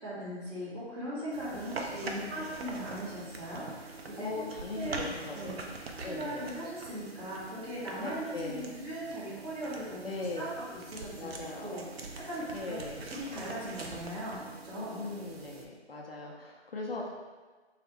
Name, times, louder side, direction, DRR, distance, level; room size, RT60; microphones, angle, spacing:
voice 1, 0.0-4.3 4.7-11.8 12.2-12.8 13.1-15.1, right 1 dB, 25° right, -12 dB, 1.3 m, -39 dB
sound 1, 1.3-15.7, right 3 dB, 60° right, 0.6 m, -44 dB
voice 2, 2.0-2.5 4.2-5.6 6.0-6.5 8.0-8.7 10.0-10.5 11.2-11.8 12.5-13.0 14.7-17.1, left 3 dB, 55° left, -1 dB, 0.6 m, -40 dB
4.3 x 2.4 x 3.1 m, 1.3 s
figure-of-eight pair, 165°, 34 cm